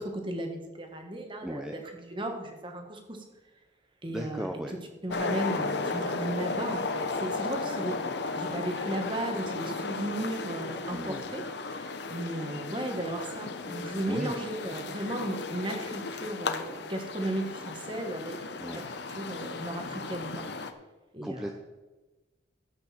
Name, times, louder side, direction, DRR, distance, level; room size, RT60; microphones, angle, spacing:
voice 1, 0.0-3.2 4.0-4.4 5.0-8.0 8.4-11.4 11.7-18.8 19.1-20.5 21.1-21.5, right 1 dB, 25° right, 4 dB, 1.4 m, -35 dB
voice 2, 1.4-1.8 4.1-4.8 10.9-11.3 14.1-14.4 18.6-18.9 21.2-21.5, equal, 5° right, 3 dB, 0.5 m, -36 dB
sound 1, 5.1-20.7, left 3 dB, 60° left, 0.8 m, -35 dB
14.0 x 8.2 x 4.4 m, 1.2 s
head